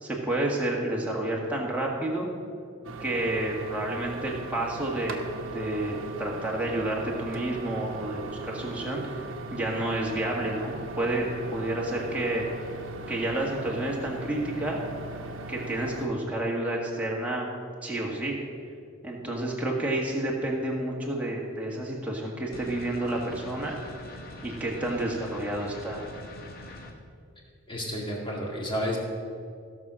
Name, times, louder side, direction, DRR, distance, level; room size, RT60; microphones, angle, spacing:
voice 1, 0.0-2.3 3.0-5.3 5.5-9.2 9.5-12.5 13.1-14.8 15.5-17.5 17.8-18.4 19.0-23.8 24.4-26.0, right 1 dB, 5° right, -3 dB, 1.8 m, -30 dB
sound 1, 2.8-16.1, right 2 dB, 65° right, 1.1 m, -39 dB
sound 2, 22.5-26.9, left 2 dB, 45° left, 1.3 m, -43 dB
voice 2, 27.7-29.0, equal, 25° left, -1 dB, 2.2 m, -31 dB
16.5 x 6.1 x 6.3 m, 2.4 s
head